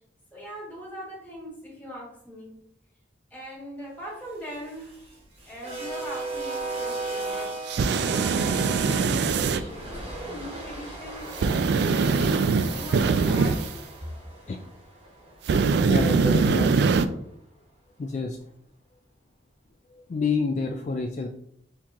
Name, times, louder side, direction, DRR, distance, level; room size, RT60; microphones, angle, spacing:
voice 1, 0.3-2.6 3.3-5.1 5.4-11.3 11.9-13.8, equal, 10° left, -5 dB, 1.7 m, -41 dB
sound 1, 4.4-16.6, right 2 dB, 35° right, 1.1 m, -37 dB
sound 2, 7.7-9.6 11.4-13.7 15.5-17.1, right 4 dB, 65° right, 0.3 m, -22 dB
voice 2, 15.8-16.7 18.0-18.4 20.1-21.3, left 4 dB, 40° left, 3 dB, 0.3 m, -28 dB
4.5 x 2.9 x 3.6 m, 0.71 s
head